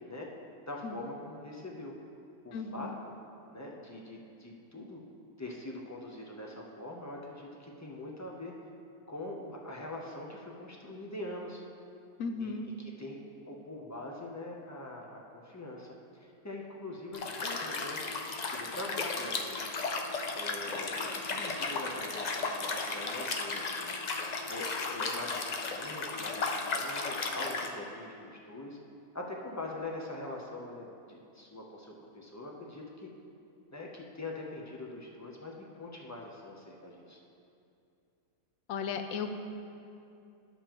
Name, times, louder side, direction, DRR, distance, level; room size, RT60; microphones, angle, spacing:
voice 1, 0.7-1.9 2.4-3.1 3.5-5.0 5.4-8.5 9.1-11.6 12.4-13.2 13.5-18.0 18.5-19.6 20.3-23.9 24.5-28.8 29.1-33.1 33.7-37.2, left 2 dB, 20° left, -1 dB, 0.4 m, -43 dB
voice 2, 2.5-2.9 12.2-12.6 38.7-39.3, left 5 dB, 75° left, 7 dB, 1.0 m, -35 dB
Liquid, 17.1-27.7, left 3 dB, 90° left, 0.3 m, -35 dB
11.5 x 7.0 x 3.0 m, 2.6 s
omnidirectional pair, 1.5 m